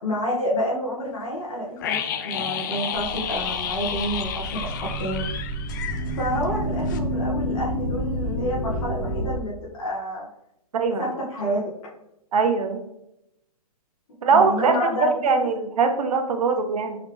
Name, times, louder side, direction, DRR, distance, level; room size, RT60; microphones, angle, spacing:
voice 1, 0.0-5.5 6.0-9.5 9.8-10.2 11.0-11.6 14.3-15.5, equal, 65° left, -6 dB, 1.7 m, -29 dB
sound 1, 1.8-6.6 6.9-7.0, left 8 dB, 30° left, 0.3 m, -31 dB
sound 2, 2.9-9.4, equal, 10° left, 0.7 m, -29 dB
voice 2, 10.7-11.0 12.3-12.8 14.2-14.7 15.0-17.0, right 4 dB, 75° right, 7 dB, 0.8 m, -21 dB
4.7 x 3.2 x 3.4 m, 0.84 s
hypercardioid pair, 150°, 19 cm